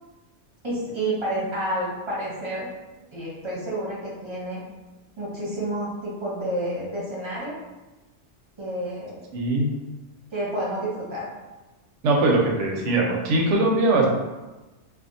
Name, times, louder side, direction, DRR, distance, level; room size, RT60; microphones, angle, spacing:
voice 1, 0.6-2.7 3.1-4.6 5.2-7.6 8.6-9.2 10.3-11.3, right 1 dB, 30° right, -6 dB, 0.6 m, -29 dB
voice 2, 9.3-9.7 12.0-14.1, right 2 dB, 80° right, -1 dB, 0.9 m, -21 dB
2.5 x 2.3 x 2.5 m, 1.1 s
omnidirectional pair, 1.2 m